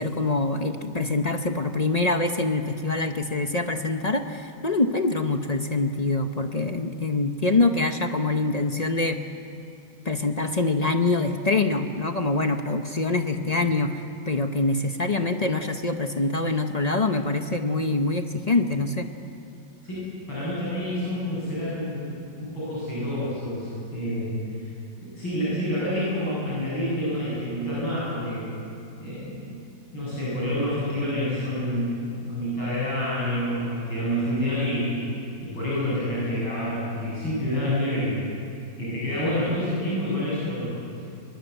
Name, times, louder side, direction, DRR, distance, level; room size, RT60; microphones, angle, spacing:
voice 1, 0.0-9.2 10.0-19.1, left 3 dB, 50° left, 6 dB, 0.4 m, -25 dB
voice 2, 19.8-24.3 24.6-24.7 25.0-28.4 29.0-29.6 29.9-34.9 35.4-38.2 38.8-40.8, left 1 dB, 85° left, -8 dB, 8.9 m, -28 dB
23.0 x 22.0 x 8.1 m, 2.6 s
omnidirectional pair, 2.1 m